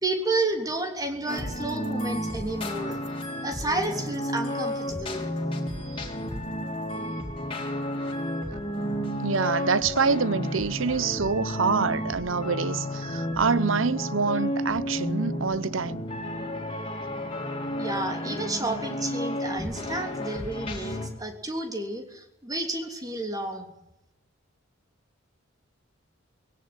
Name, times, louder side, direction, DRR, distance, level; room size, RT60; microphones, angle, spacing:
voice 1, 0.0-3.0 3.4-5.2 17.8-23.7, right 2 dB, 20° right, 3.1 m, -31 dB
sound 1, 1.3-21.1, equal, 30° left, 4.0 m, -32 dB
voice 2, 9.2-16.0, right 5 dB, 80° right, 0.9 m, -26 dB
20.5 x 17.0 x 9.9 m
head